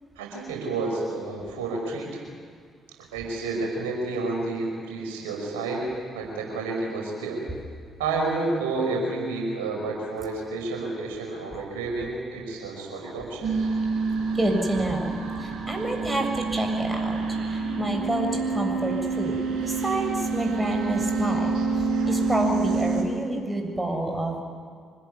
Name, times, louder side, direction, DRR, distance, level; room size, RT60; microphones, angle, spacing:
voice 1, 0.2-2.2 3.1-7.4 8.0-13.5, right 3 dB, 80° right, -1 dB, 5.5 m, -30 dB
sound 1, 13.4-23.0, right 4 dB, 60° right, 6.5 m, -27 dB
voice 2, 14.3-15.1 15.4-21.6 22.1-24.4, right 1 dB, 15° right, 3 dB, 7.1 m, -28 dB
25.5 x 20.5 x 9.6 m, 2.1 s
hypercardioid pair, 45°, 0 cm